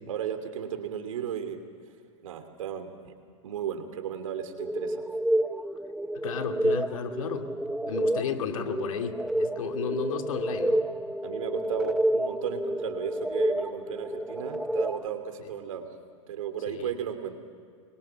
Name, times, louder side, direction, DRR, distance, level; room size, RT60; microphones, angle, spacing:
voice 1, 0.1-1.6 2.2-3.1 3.4-5.0 11.2-15.9 16.3-17.4, right 8 dB, 80° right, 7 dB, 2.9 m, -35 dB
sound 1, 4.6-15.1, right 1 dB, ahead, 0.6 m, -29 dB
voice 2, 6.2-7.4 7.8-10.9 15.4-15.5 16.7-16.9, left 6 dB, 85° left, 5 dB, 2.4 m, -33 dB
27.0 x 23.0 x 5.9 m, 2.2 s
supercardioid pair, 140°, 17 cm